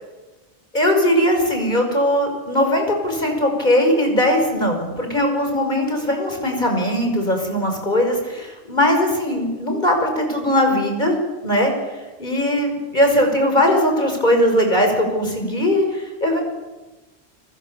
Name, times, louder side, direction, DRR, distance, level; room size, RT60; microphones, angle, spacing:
voice 1, 0.7-11.2 11.4-11.7 12.2-16.4, left 1 dB, 45° left, 3 dB, 5.8 m, -19 dB
29.5 x 21.5 x 7.1 m, 1.2 s
omnidirectional pair, 1.1 m